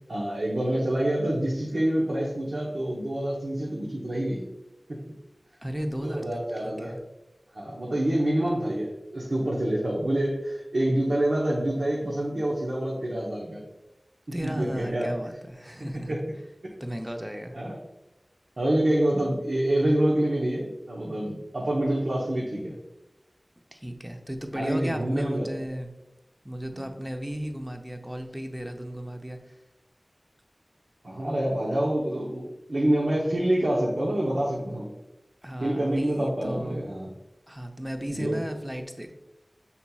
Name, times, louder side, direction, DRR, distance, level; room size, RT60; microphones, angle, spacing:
voice 1, 0.1-4.5 4.9-5.0 6.0-7.0 7.5-13.6 14.4-15.1 16.1-16.2 17.5-17.8 18.6-22.8 24.5-25.5 26.7-26.9 31.0-34.9 35.6-37.1 38.1-38.4, right 1 dB, 80° right, -5 dB, 0.8 m, -27 dB
voice 2, 5.6-7.0 14.3-16.2 16.8-17.6 23.7-25.9 26.4-29.5 35.4-36.8 37.5-39.1, equal, 10° right, 4 dB, 0.6 m, -35 dB
5.7 x 4.1 x 2.3 m, 0.96 s
wide cardioid pair, 50°, 0 cm